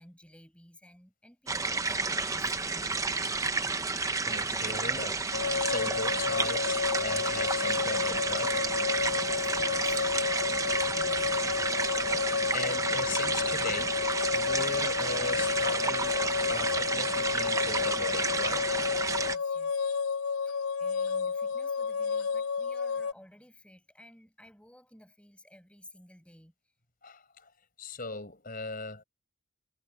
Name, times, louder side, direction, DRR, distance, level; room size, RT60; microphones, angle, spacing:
voice 1, 0.0-3.8 9.2-11.4 11.9-12.1 19.2-19.8 20.4-26.5, left 1 dB, 5° left, 6.2 m, -55 dB
sound 1, 1.5-19.4, right 3 dB, 15° right, 0.8 m, -31 dB
voice 2, 4.2-5.2 5.6-8.6 11.8-14.0 14.3-18.7 27.0-27.5 27.8-29.0, left 3 dB, 40° left, 6.0 m, -39 dB
sound 2, 5.3-23.1, left 5 dB, 90° left, 0.5 m, -31 dB
head